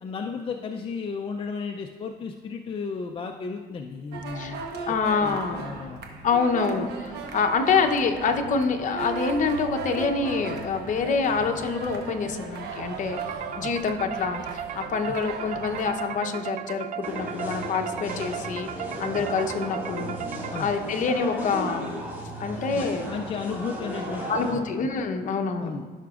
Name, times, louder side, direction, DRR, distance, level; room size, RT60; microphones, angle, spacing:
voice 1, 0.0-4.6 5.2-6.1 13.6-13.7 20.5-20.8 22.7-24.7 25.6-25.8, left 5 dB, 30° left, 3 dB, 0.4 m, -34 dB
sound 1, 4.1-15.9, right 4 dB, 75° right, 1.1 m, -37 dB
voice 2, 4.9-5.6 6.2-13.2 13.6-20.2 20.6-22.0 22.4-23.1 24.3-25.7, left 5 dB, 50° left, 5 dB, 0.8 m, -26 dB
sound 2, 13.2-21.0, right 9 dB, 45° right, 0.4 m, -36 dB
sound 3, 17.0-24.5, equal, 10° right, 2.0 m, -35 dB
15.5 x 5.9 x 2.4 m, 1.5 s
cardioid pair, 110°, 17 cm